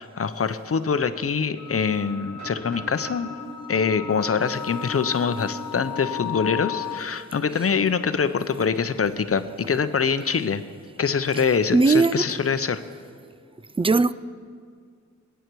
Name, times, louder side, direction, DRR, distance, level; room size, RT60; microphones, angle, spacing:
voice 1, 0.0-3.3 3.7-10.6 11.0-12.8, left 6 dB, 50° left, 11 dB, 0.7 m, -24 dB
sound 1, 1.6-7.0, left 8 dB, 85° left, 0.7 m, -35 dB
sound 2, 2.3-6.2 6.6-6.7 7.2-7.5 8.8-9.7, right 2 dB, 70° right, 4.7 m, -46 dB
voice 2, 11.7-12.2 13.8-14.1, right 3 dB, 20° right, 17 dB, 0.4 m, -18 dB
21.5 x 9.2 x 4.7 m, 2.2 s
cardioid pair, 65°, 29 cm